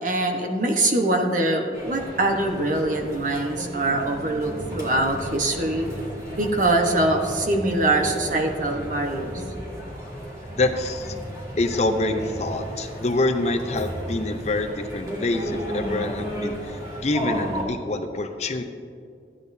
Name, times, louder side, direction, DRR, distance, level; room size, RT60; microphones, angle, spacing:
voice 1, 0.0-5.9 6.4-9.4, right 2 dB, 45° right, 2 dB, 1.1 m, -23 dB
sound 1, 1.7-17.6, equal, 20° right, 2.6 m, -34 dB
voice 2, 10.6-11.1 11.6-18.6, left 2 dB, 40° left, 7 dB, 0.6 m, -26 dB
15.0 x 9.9 x 2.7 m, 2.3 s
head